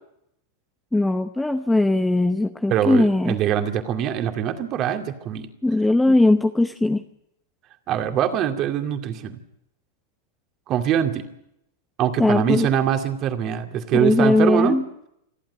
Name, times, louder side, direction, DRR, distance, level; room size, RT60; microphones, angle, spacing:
voice 1, 0.9-3.3 5.6-7.0 12.2-12.7 13.9-14.8, left 2 dB, 5° left, 9 dB, 0.8 m, -19 dB
voice 2, 2.7-5.5 7.9-9.4 10.7-11.3 12.0-14.8, right 10 dB, 35° right, 6 dB, 2.4 m, -23 dB
27.5 x 12.0 x 9.4 m, 0.80 s
figure-of-eight pair, 90°, 0 cm